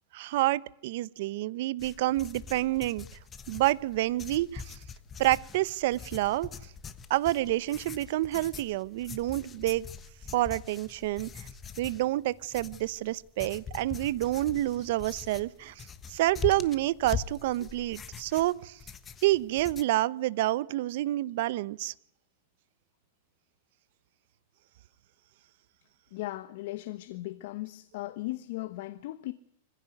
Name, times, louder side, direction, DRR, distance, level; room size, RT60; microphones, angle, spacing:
voice 1, 0.1-3.0 3.5-4.8 5.2-6.5 7.1-9.9 10.3-11.5 11.8-18.8 19.2-21.9, right 16 dB, 60° right, 0.9 m, -28 dB
sound 1, 1.8-19.8, left 6 dB, 20° left, 1.3 m, -43 dB
voice 2, 26.1-29.3, left 17 dB, 60° left, 1.2 m, -37 dB
24.5 x 16.0 x 9.3 m
supercardioid pair, 150°, 0 cm